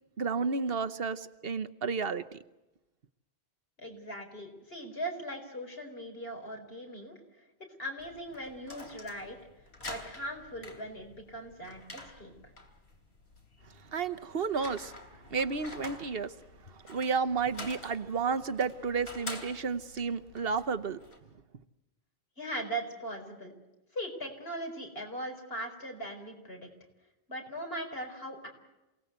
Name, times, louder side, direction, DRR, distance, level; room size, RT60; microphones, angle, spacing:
voice 1, 0.2-2.4 13.9-14.9 15.3-16.3 16.7-21.0, right 5 dB, 65° right, 11 dB, 1.2 m, -32 dB
voice 2, 3.8-7.2 7.6-9.4 9.9-12.3 22.4-23.5 23.9-26.7 27.3-28.5, right 1 dB, 65° left, 3 dB, 4.9 m, -39 dB
sound 1, 8.0-21.2, left 2 dB, 85° left, 3.4 m, -48 dB
28.0 x 18.5 x 8.1 m, 1.0 s
omnidirectional pair, 1.1 m